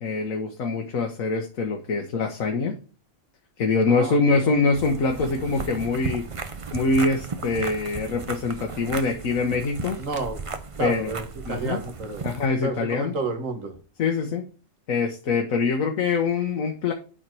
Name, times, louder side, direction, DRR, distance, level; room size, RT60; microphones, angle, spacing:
voice 1, 0.0-2.8 3.6-6.2 6.7-10.0 10.8-11.1 11.5-11.8 12.2-13.1 14.0-14.5 14.9-16.9, left 4 dB, 85° left, 3 dB, 1.5 m, -24 dB
voice 2, 3.9-4.2 4.4-4.6 10.0-10.4 10.7-12.2 12.6-13.8, right 3 dB, 75° right, 5 dB, 1.9 m, -30 dB
sound 1, 4.7-12.5, right 4 dB, 30° right, 0.6 m, -35 dB
8.6 x 4.5 x 4.7 m, 0.36 s
omnidirectional pair, 1.4 m